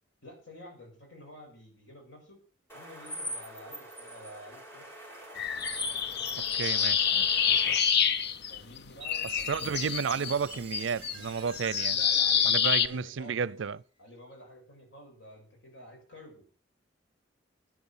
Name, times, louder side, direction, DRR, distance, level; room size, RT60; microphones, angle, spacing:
voice 1, 0.2-2.4 2.7-4.9 8.5-9.5 11.9-13.4 14.0-16.5, left 1 dB, 85° left, 6.3 m, -50 dB
sound 1, 2.7-7.8, equal, 15° left, 3.6 m, -42 dB
sound 2, 5.4-8.8 9.0-12.9, left 7 dB, 60° left, 0.7 m, -27 dB
voice 2, 6.4-7.8 9.3-12.0 12.4-13.8, right 6 dB, 80° right, 0.5 m, -32 dB
Chime, 9.0-13.7, right 7 dB, 30° right, 1.5 m, -49 dB
10.0 x 9.6 x 7.3 m
head